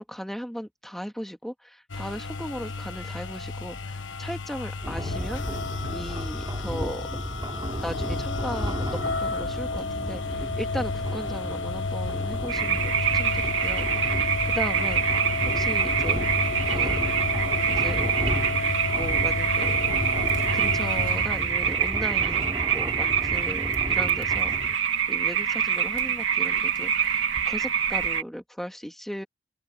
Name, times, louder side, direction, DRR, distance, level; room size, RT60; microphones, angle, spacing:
voice 1, 0.0-5.4 5.9-7.1 7.8-15.3 15.5-16.9 17.7-18.1 18.9-20.2 20.5-24.8 25.1-29.2, equal, ahead, 2.0 m, -37 dB
sound 1, 1.9-21.5, left 3 dB, 80° left, 1.3 m, -31 dB
sound 2, 4.8-24.7, equal, 25° right, 3.4 m, -34 dB
sound 3, 12.5-28.2, right 8 dB, 90° right, 2.9 m, -25 dB
open air
head